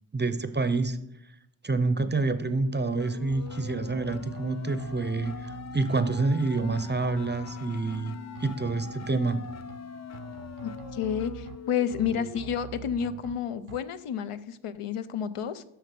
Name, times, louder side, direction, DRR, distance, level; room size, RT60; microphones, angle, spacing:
voice 1, 0.1-1.0 1.6-9.5, right 3 dB, 20° right, 12 dB, 0.5 m, -28 dB
sound 1, 2.4-12.4, left 7 dB, 35° left, 0.4 m, -42 dB
sound 2, 3.3-4.5 4.8-6.2 6.6-8.0 8.4-9.8 10.1-11.6 11.9-13.3 13.7-13.8, right 9 dB, 85° right, 0.6 m, -45 dB
voice 2, 10.6-15.6, left 8 dB, 85° left, 12 dB, 0.7 m, -30 dB
7.9 x 6.4 x 6.7 m, 0.83 s
wide cardioid pair, 115°, 50 cm